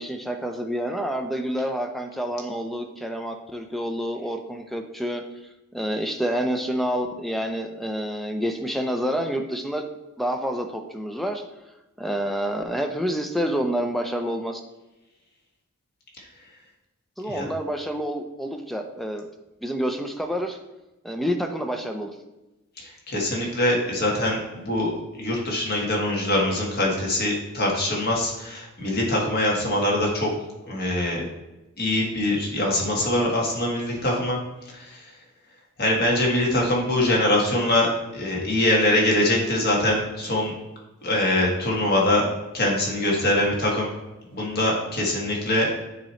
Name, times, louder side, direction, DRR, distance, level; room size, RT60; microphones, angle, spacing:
voice 1, 0.0-5.2 5.7-9.8 10.2-11.4 12.0-14.6 17.2-19.3 19.6-20.6 21.0-22.1, equal, ahead, 4 dB, 0.5 m, -28 dB
voice 2, 22.8-24.9 25.2-30.3 30.7-31.2 31.8-34.4 34.7-35.0 35.8-37.9 38.1-40.5 41.0-42.3 42.5-43.9 44.3-45.7, left 1 dB, 45° left, -2 dB, 1.6 m, -23 dB
8.8 x 3.0 x 4.3 m, 1.0 s
head